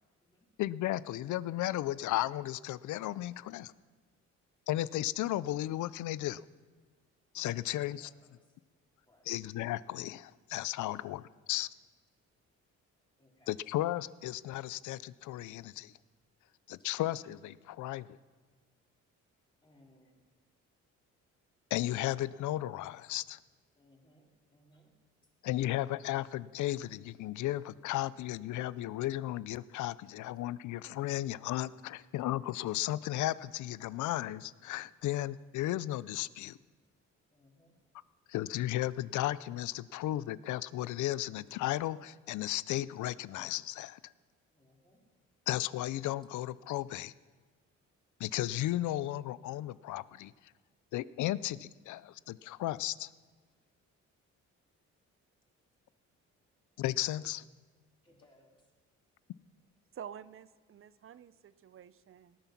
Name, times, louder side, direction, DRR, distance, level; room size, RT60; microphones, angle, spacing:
voice 1, 0.6-3.7 4.7-6.4 7.3-8.1 9.3-11.7 13.5-15.9 16.7-18.2 21.7-23.4 25.4-36.6 38.3-44.0 45.5-47.1 48.2-50.3 50.9-53.1 56.8-57.4, left 15 dB, 75° left, 19 dB, 0.5 m, -34 dB
voice 2, 7.3-8.6 9.0-9.3 13.2-13.5 19.6-20.2 23.7-24.9 37.3-37.7 44.5-45.0 58.0-58.7, equal, 15° left, -2 dB, 3.3 m, -64 dB
voice 3, 59.9-62.4, right 8 dB, 45° right, 16 dB, 0.6 m, -49 dB
18.5 x 9.0 x 5.9 m, 1.5 s
cardioid pair, 90°, 30 cm